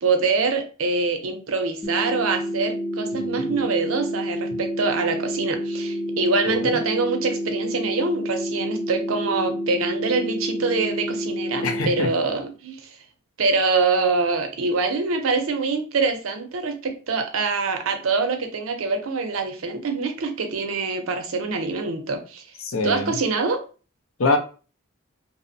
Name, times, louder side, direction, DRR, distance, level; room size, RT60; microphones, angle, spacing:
voice 1, 0.0-12.9 13.4-22.4 22.8-23.6, right 4 dB, 80° right, 6 dB, 0.5 m, -25 dB
sound 1, 1.8-11.8, equal, 10° left, 0.4 m, -29 dB
voice 2, 3.1-3.6 6.5-6.8 11.6-12.1 22.6-23.1 24.2-24.4, left 3 dB, 80° left, 6 dB, 0.6 m, -25 dB
2.6 x 2.0 x 2.6 m, 0.36 s
head